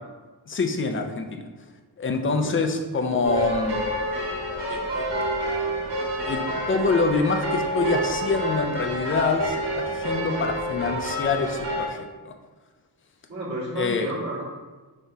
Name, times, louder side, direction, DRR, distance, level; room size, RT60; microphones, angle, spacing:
voice 1, 0.5-1.5 2.0-3.8 4.7-5.1 6.3-12.3 13.8-14.1, left 3 dB, 30° left, 5 dB, 0.4 m, -26 dB
voice 2, 2.3-2.7 13.3-14.4, right 1 dB, 40° right, -9 dB, 1.4 m, -32 dB
sound 1, 3.2-11.9, equal, 65° right, 1.4 m, -28 dB
5.5 x 3.5 x 2.7 m, 1.3 s
wide cardioid pair, 165°, 43 cm